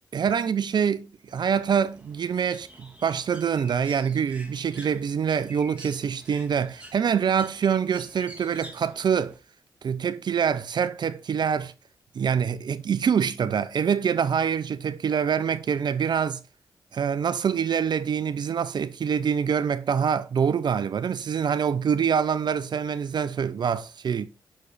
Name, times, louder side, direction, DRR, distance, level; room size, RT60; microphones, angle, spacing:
voice 1, 0.1-9.3 9.8-11.7 12.1-16.4 16.9-24.3, right 7 dB, 60° right, 0.5 m, -25 dB
Bird, 1.3-9.4, right 1 dB, 15° right, 1.6 m, -48 dB
6.2 x 4.9 x 4.0 m
supercardioid pair, 45°, 8 cm